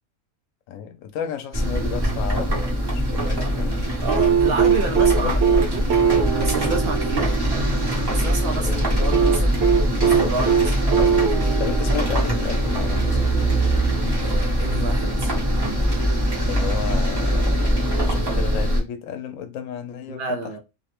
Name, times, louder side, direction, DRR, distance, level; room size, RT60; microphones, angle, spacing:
voice 1, 0.7-3.9 5.1-5.5 8.6-9.0 11.6-13.3 16.5-20.4, left 8 dB, 85° left, 1.0 m, -33 dB
sound 1, 1.5-18.8, right 1 dB, 25° right, 0.7 m, -22 dB
voice 2, 4.0-5.9 6.4-7.4 8.1-9.6 9.9-10.8 14.2-15.3 20.1-20.6, right 3 dB, 65° right, 0.6 m, -29 dB
sound 2, 4.1-8.2 9.1-12.7 14.1-14.2, right 7 dB, 80° right, 1.0 m, -21 dB
2.7 x 2.0 x 2.9 m
omnidirectional pair, 1.3 m